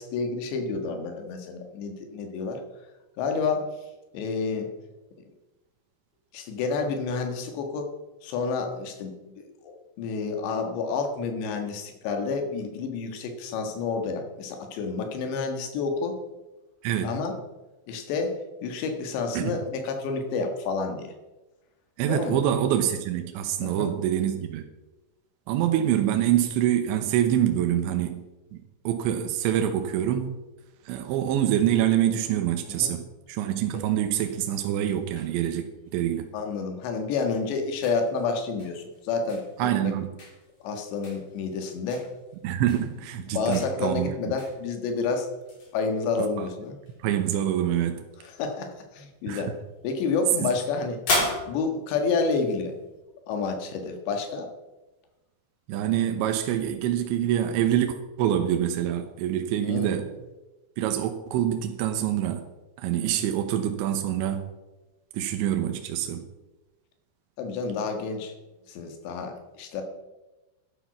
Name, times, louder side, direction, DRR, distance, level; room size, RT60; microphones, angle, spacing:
voice 1, 0.0-2.6 3.2-3.7 4.1-4.7 6.3-7.9 8.2-16.2 17.0-17.4 17.9-21.1 22.1-22.4 23.6-23.9 32.7-32.9 36.3-39.9 40.6-42.1 43.3-45.3 45.7-46.8 48.2-49.5 49.8-51.0 51.5-52.8 53.3-54.5 59.6-60.0 63.0-63.2 67.4-68.3 68.7-69.8, left 4 dB, 75° left, 5 dB, 3.7 m, -29 dB
voice 2, 22.0-24.6 25.5-28.2 28.5-30.3 30.9-35.6 35.9-36.3 39.6-40.1 42.4-44.3 46.4-46.5 47.0-48.0 49.3-49.4 50.4-50.5 55.7-60.1 60.8-62.4 62.8-64.4 65.1-66.2, right 11 dB, 80° right, 5 dB, 3.2 m, -25 dB
sound 1, 34.2-53.0, left 1 dB, 40° left, 4.7 m, -39 dB
11.5 x 10.5 x 5.8 m, 1.1 s
omnidirectional pair, 5.3 m